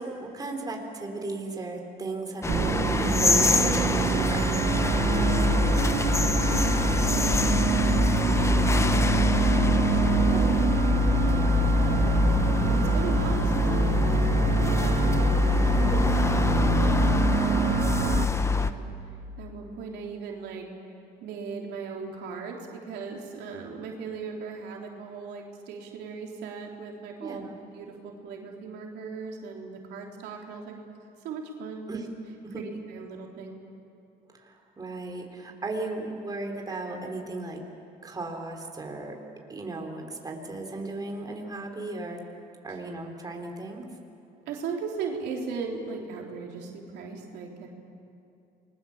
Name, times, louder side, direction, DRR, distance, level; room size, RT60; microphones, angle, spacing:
voice 1, 0.0-4.6 10.3-10.5 15.6-16.1 27.2-27.6 31.9-32.1 32.4-32.6 34.3-37.6 38.0-39.2 39.5-42.2 42.6-43.9, right 2 dB, 20° right, 2 dB, 3.8 m, -36 dB
sound 1, 2.4-18.7, left 4 dB, 15° left, 1.0 m, -24 dB
sound 2, 2.5-18.3, right 10 dB, 45° right, 0.6 m, -27 dB
voice 2, 5.2-11.3 11.8-15.4 15.7-16.0 16.5-18.9 19.4-20.7 21.2-27.5 27.7-30.7 31.2-32.0 32.5-33.6 44.4-47.7, right 5 dB, 80° right, 0 dB, 3.4 m, -38 dB
28.5 x 21.5 x 7.2 m, 2.7 s
cardioid pair, 110°, 17 cm